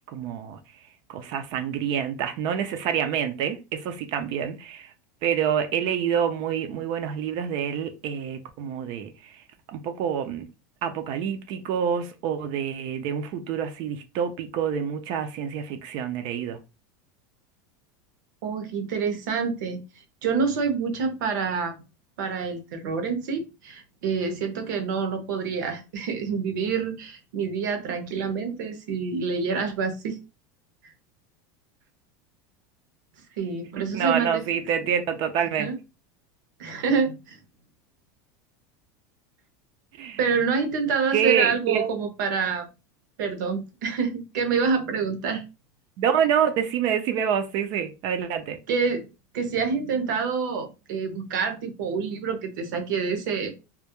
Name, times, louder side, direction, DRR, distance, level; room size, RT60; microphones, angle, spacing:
voice 1, 0.1-0.6 1.1-4.9 5.2-10.5 10.8-16.6 33.9-35.7 40.0-40.2 41.1-41.9 46.0-48.6, right 8 dB, 50° right, 0.4 m, -27 dB
voice 2, 18.4-19.8 20.2-21.8 22.2-30.2 33.4-34.4 35.6-35.8 36.6-37.4 40.2-42.7 43.2-45.4 48.7-49.1 49.3-53.5, right 5 dB, 80° right, 0.7 m, -27 dB
2.2 x 2.0 x 2.8 m
supercardioid pair, 135°, 10 cm